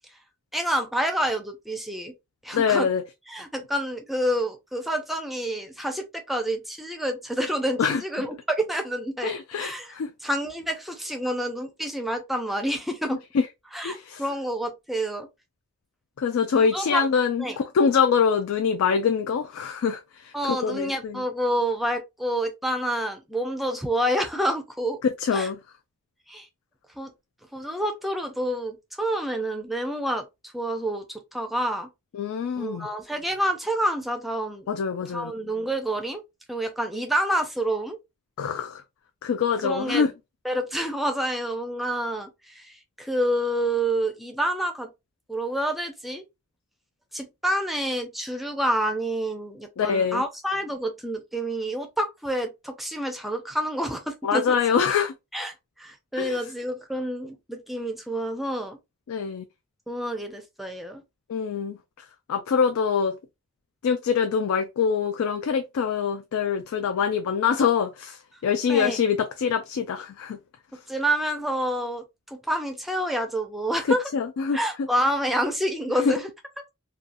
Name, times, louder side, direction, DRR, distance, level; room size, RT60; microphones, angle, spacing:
voice 1, 0.5-2.1 2.4-2.9 3.3-9.9 10.2-13.2 13.7-15.3 16.6-17.1 17.4-17.6 20.3-25.0 25.3-25.5 26.3-26.5 27.0-27.1 27.5-30.3 30.5-31.9 32.6-34.7 35.1-36.2 36.5-38.0 39.6-40.1 40.4-44.9 45.3-46.2 47.1-54.6 55.3-58.8 59.9-61.0 68.7-69.0 70.9-74.1 74.5-76.3, right 1 dB, ahead, 0.4 m, -28 dB
voice 2, 2.5-3.0 7.8-8.0 9.2-10.1 13.3-13.5 13.8-14.2 16.2-20.3 20.6-21.2 25.2-25.6 32.1-32.9 34.7-35.3 38.4-38.8 39.2-40.1 49.8-50.2 54.2-55.1 56.2-56.4 59.1-59.4 61.3-61.8 62.3-63.1 63.8-70.4 73.9-74.6 76.0-76.1, left 6 dB, 75° left, 0.3 m, -24 dB
2.6 x 2.3 x 2.5 m
head